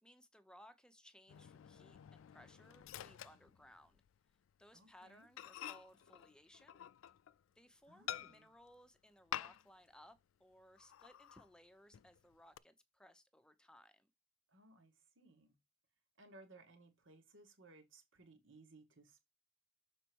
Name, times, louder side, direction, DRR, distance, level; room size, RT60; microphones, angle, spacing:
voice 1, 0.0-4.0 4.6-6.8 7.5-14.1, equal, 5° left, 0.7 m, -63 dB
Microwave oven, 1.3-4.2 4.5-4.7 5.0-5.1 5.4-7.4 8.1-8.7 9.3-9.9 10.2-10.3 10.8-11.5 11.9-12.6, left 11 dB, 85° left, 0.3 m, -49 dB
voice 2, 4.7-5.3 7.9-8.5 14.5-15.6 16.2-19.2, right 2 dB, 70° right, 2.0 m, -62 dB
6.6 x 4.4 x 4.6 m
head